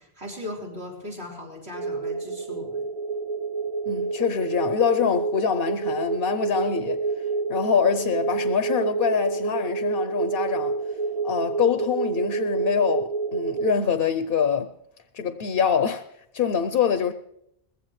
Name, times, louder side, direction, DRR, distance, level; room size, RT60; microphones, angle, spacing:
voice 1, 0.0-2.9, left 1 dB, 80° right, 4.1 m, -38 dB
sound 1, 1.7-13.7, right 4 dB, 45° right, 0.6 m, -28 dB
voice 2, 3.9-7.0 7.5-10.8 11.2-14.7 15.1-16.0 16.3-17.1, left 7 dB, 65° left, 0.8 m, -24 dB
20.5 x 15.5 x 3.2 m
omnidirectional pair, 1.1 m